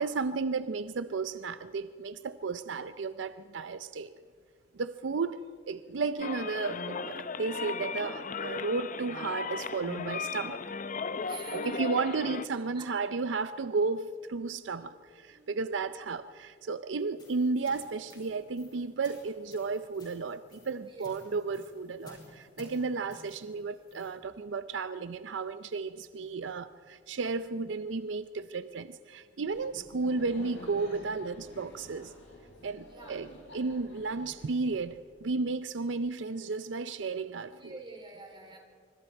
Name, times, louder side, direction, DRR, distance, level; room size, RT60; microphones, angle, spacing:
voice 1, 0.0-4.1 4.8-10.6 11.5-32.1 32.6-37.8, right 4 dB, 80° right, 13 dB, 0.5 m, -33 dB
sound 1, 6.2-12.5, left 5 dB, 45° left, 0.7 m, -36 dB
voice 2, 11.2-12.1 12.7-12.9 15.3-15.9 20.9-21.2 32.9-33.2 37.5-38.6, right 3 dB, 25° right, 3 dB, 3.6 m, -48 dB
sound 2, 17.0-24.2, left 2 dB, 25° left, 5.7 m, -55 dB
Laughter, 29.5-35.3, left 1 dB, 90° left, 5.9 m, -50 dB
25.0 x 25.0 x 4.6 m, 2.1 s
head